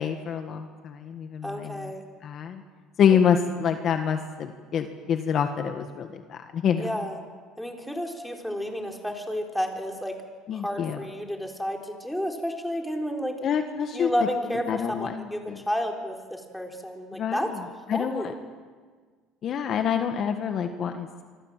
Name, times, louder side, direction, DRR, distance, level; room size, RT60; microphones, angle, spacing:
voice 1, 0.0-1.9 2.2-2.6 3.0-6.9 10.5-11.0 13.4-14.1 14.5-15.6 17.1-17.6 17.9-18.3 19.4-21.2, left 7 dB, 45° left, 6 dB, 1.7 m, -27 dB
voice 2, 1.4-2.0 3.1-3.2 6.8-7.2 7.6-10.2 10.5-13.4 13.9-17.5 17.9-18.3, equal, ahead, 2 dB, 4.0 m, -31 dB
26.0 x 25.5 x 7.6 m, 1.5 s
cardioid pair, 125°, 0 cm